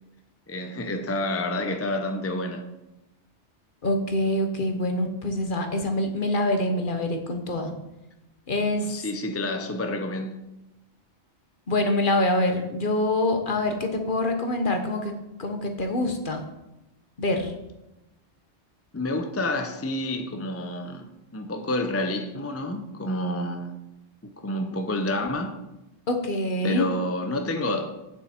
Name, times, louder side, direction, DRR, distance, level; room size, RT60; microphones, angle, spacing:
voice 1, 0.5-2.6 8.8-10.4 18.9-23.7 24.2-25.6 26.6-28.0, left 1 dB, 15° left, 0.5 m, -29 dB
voice 2, 3.8-7.7 8.5-9.0 11.7-15.1 15.4-16.4 17.2-17.5 26.1-26.9, left 1 dB, 45° left, 1.3 m, -25 dB
8.8 x 7.0 x 4.4 m
omnidirectional pair, 1.2 m